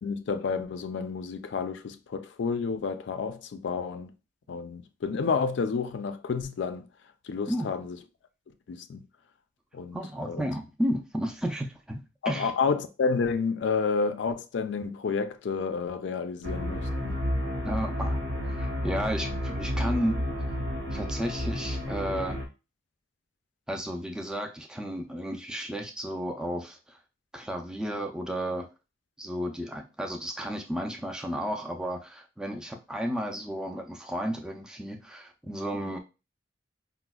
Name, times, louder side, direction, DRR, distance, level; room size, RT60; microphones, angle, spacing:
voice 1, 0.0-4.1 4.5-6.9 7.3-8.0 8.7-9.0 9.7-10.4 12.2-17.2, left 5 dB, 75° left, 0.4 m, -30 dB
voice 2, 9.9-12.5 17.6-20.2 20.9-22.4 23.7-27.0 27.3-28.7 29.2-36.0, equal, 5° right, 0.3 m, -33 dB
sound 1, 16.4-22.4, equal, 65° right, 0.8 m, -31 dB
4.9 x 2.0 x 2.3 m
head